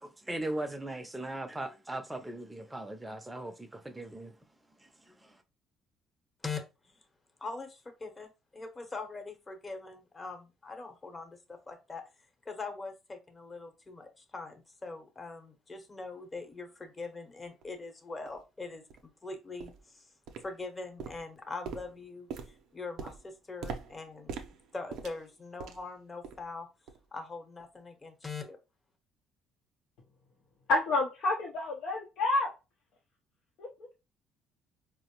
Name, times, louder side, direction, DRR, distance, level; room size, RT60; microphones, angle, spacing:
voice 1, 0.0-4.3 4.8-4.9 5.2-5.3, right 1 dB, 10° right, 0.6 m, -39 dB
voice 2, 6.4-7.0 7.4-12.0 12.4-20.1 20.4-24.4 24.7-26.7 27.1-28.6, left 3 dB, 30° left, 0.9 m, -42 dB
sound 1, 17.6-17.7 18.3-18.4 18.9-19.1 19.6-19.9 20.3-20.7 21.0-25.9 26.2-26.5 26.9-27.1 27.6-27.7, right 6 dB, 75° right, 0.5 m, -43 dB
voice 3, 30.7-32.5 33.6-33.7, left 2 dB, 75° left, 0.6 m, -29 dB
4.3 x 2.0 x 2.9 m
supercardioid pair, 75°, 0 cm